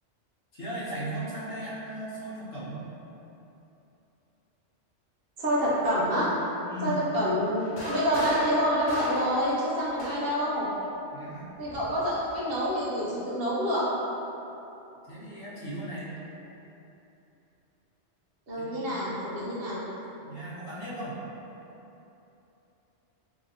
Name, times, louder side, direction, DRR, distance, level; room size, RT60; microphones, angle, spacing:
voice 1, 0.5-2.9 6.6-6.9 11.1-11.5 15.0-16.2 18.6-18.9 20.2-21.2, right 1 dB, 55° left, -9 dB, 1.0 m, -37 dB
voice 2, 5.4-6.3 6.8-10.7 11.6-13.9 18.5-19.8, equal, 55° right, -7 dB, 0.9 m, -27 dB
sound 1, 7.6-10.5 11.6-12.7, equal, 90° left, 1.1 m, -39 dB
3.9 x 2.7 x 2.6 m, 3.0 s
omnidirectional pair, 1.2 m